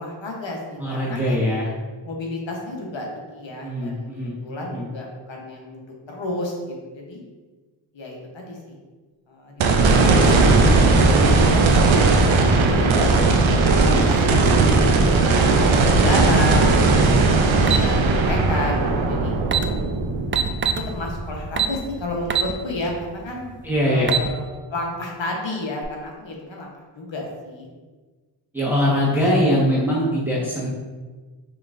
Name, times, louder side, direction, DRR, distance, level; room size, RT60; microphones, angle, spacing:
voice 1, 0.0-1.5 2.0-4.1 4.4-7.2 7.9-8.8 9.3-13.1 13.7-17.1 17.6-19.4 20.7-23.5 23.9-26.7 27.0-27.7 29.2-29.6, left 2 dB, 75° left, -1 dB, 1.1 m, -31 dB
voice 2, 0.8-1.7 3.6-4.4 4.7-4.9 11.0-11.3 23.6-24.2 28.5-30.7, equal, 5° right, -7 dB, 1.4 m, -22 dB
sound 1, 9.6-21.9 22.4-22.5 25.8-25.9, right 3 dB, 85° right, 0.6 m, -17 dB
sound 2, 17.7-17.9 19.1-19.2 19.4-19.7 20.3-20.8 21.6-21.8 22.3-22.5 23.0-23.1 23.9-24.3, right 7 dB, 30° right, 0.4 m, -21 dB
5.8 x 3.2 x 2.6 m, 1.3 s
cardioid pair, 45°, 46 cm